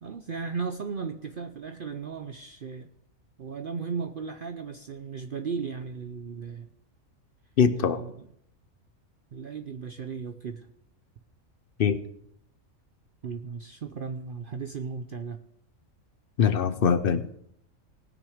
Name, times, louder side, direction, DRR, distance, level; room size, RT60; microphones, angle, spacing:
voice 1, 0.0-2.9 3.4-6.7 7.8-8.1 9.3-10.7 13.2-15.4, right 5 dB, 55° right, 0.6 m, -36 dB
voice 2, 7.6-8.0 11.8-12.0 16.4-17.5, left 7 dB, 55° left, 0.7 m, -23 dB
19.0 x 6.4 x 5.0 m
omnidirectional pair, 1.4 m